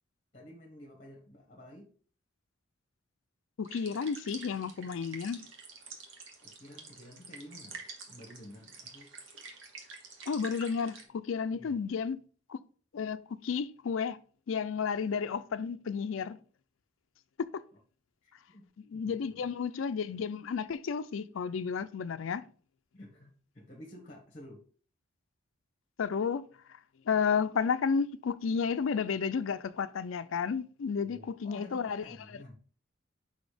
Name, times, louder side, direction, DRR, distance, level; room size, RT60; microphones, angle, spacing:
voice 1, 0.3-1.9 6.4-9.1 11.5-11.7 18.2-19.5 22.9-24.6 31.0-32.6, left 1 dB, 35° left, 1.3 m, -51 dB
voice 2, 3.6-5.4 10.3-12.2 12.5-12.6 12.9-14.2 14.5-16.4 17.4-17.6 18.9-22.4 26.0-26.4 27.1-32.0, left 6 dB, 80° left, 0.4 m, -32 dB
sound 1, 3.6-11.0, right 4 dB, 75° right, 1.3 m, -48 dB
5.2 x 4.1 x 4.9 m
head